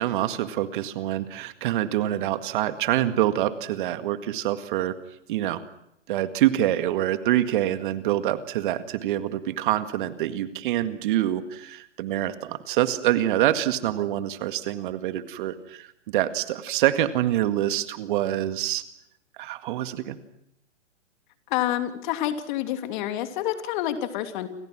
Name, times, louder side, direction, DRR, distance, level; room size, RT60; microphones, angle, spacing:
voice 1, 0.0-4.9 5.3-5.6 6.1-18.8 19.4-20.2, right 13 dB, 45° right, 10 dB, 2.0 m, -26 dB
voice 2, 21.5-24.5, left 12 dB, 40° left, 8 dB, 2.9 m, -28 dB
29.5 x 26.5 x 6.2 m, 0.76 s
hypercardioid pair, 125°, 35 cm